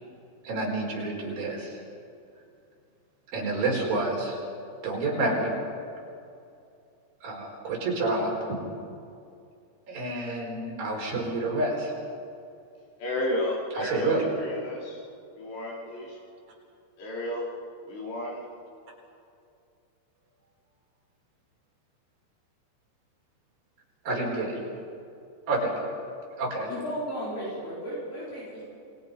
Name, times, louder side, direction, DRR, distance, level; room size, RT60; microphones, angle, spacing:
voice 1, 0.4-1.8 3.3-4.4 4.8-5.5 7.2-8.6 9.9-11.9 13.8-14.2 24.0-24.5 25.5-25.9 26.4-26.7, right 2 dB, 55° right, -2 dB, 6.3 m, -29 dB
voice 2, 13.0-15.0 15.3-16.2 17.0-17.5 17.8-18.5, left 1 dB, 80° left, -4 dB, 6.5 m, -32 dB
voice 3, 26.7-28.7, equal, 55° left, -7 dB, 6.5 m, -35 dB
28.0 x 21.0 x 5.4 m, 2.5 s
omnidirectional pair, 4.9 m